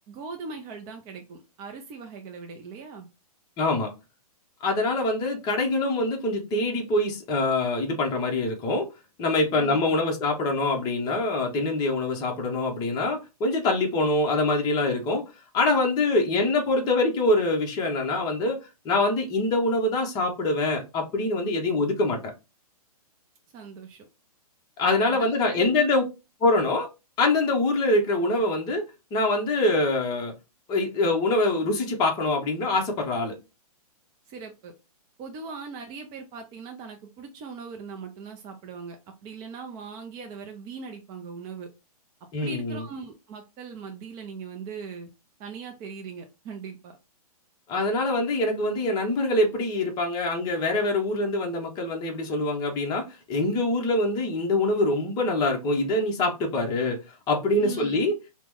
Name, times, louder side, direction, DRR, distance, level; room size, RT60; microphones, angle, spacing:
voice 1, 0.1-3.1 9.5-10.0 16.3-16.5 23.5-24.1 25.1-25.8 34.3-34.7 35.2-39.0 39.2-41.7 42.4-45.1 45.4-46.9 57.6-58.0, right 5 dB, 20° right, 0.3 m, -40 dB
voice 2, 3.6-3.9 4.6-8.9 9.2-15.2 15.5-18.6 18.8-22.2 24.8-26.0 26.4-26.9 27.2-28.8 29.1-30.3 30.7-33.4 42.3-42.8 47.7-57.0 57.3-58.1, left 2 dB, 20° left, 0.7 m, -24 dB
2.9 x 2.0 x 3.5 m
hypercardioid pair, 140°, 20 cm